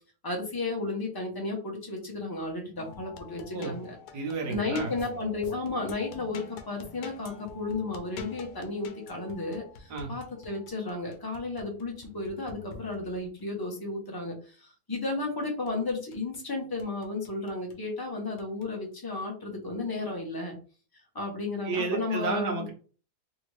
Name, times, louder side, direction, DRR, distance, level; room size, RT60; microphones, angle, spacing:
voice 1, 0.2-4.0 4.5-20.6 21.1-22.6, left 3 dB, 20° left, 1 dB, 0.7 m, -33 dB
sound 1, 2.8-13.4 15.2-16.4 16.8-17.8 18.4-18.7, left 5 dB, 85° left, 1.2 m, -46 dB
voice 2, 4.1-4.9 9.9-10.1 21.6-22.7, right 4 dB, 90° right, 2 dB, 1.4 m, -31 dB
3.4 x 2.8 x 3.1 m, 0.38 s
omnidirectional pair, 1.7 m